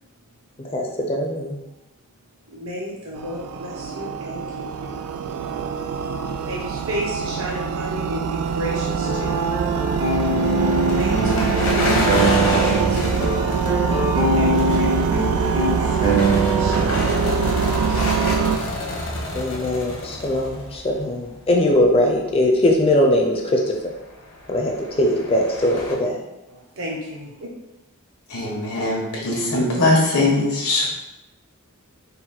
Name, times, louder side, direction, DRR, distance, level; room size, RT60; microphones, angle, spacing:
voice 1, 0.7-1.6 19.3-23.6 24.5-26.2, left 1 dB, 25° left, 1 dB, 0.5 m, -20 dB
voice 2, 2.5-5.0 6.4-9.6 10.9-13.3 14.4-16.0 16.6-17.3 17.9-18.5 26.5-27.5, right 1 dB, 65° right, -3 dB, 0.8 m, -33 dB
sound 1, 3.2-18.6, right 6 dB, 80° right, 0.3 m, -23 dB
sound 2, 9.0-12.9 13.2-17.0, right 1 dB, 20° right, 0.5 m, -23 dB
sound 3, 10.1-21.4 21.7-22.0 22.4-22.5 24.1-25.9, left 1 dB, 60° left, 0.9 m, -29 dB
voice 3, 28.3-30.9, left 2 dB, 80° left, -3 dB, 1.2 m, -20 dB
4.0 x 2.3 x 4.2 m, 0.95 s
head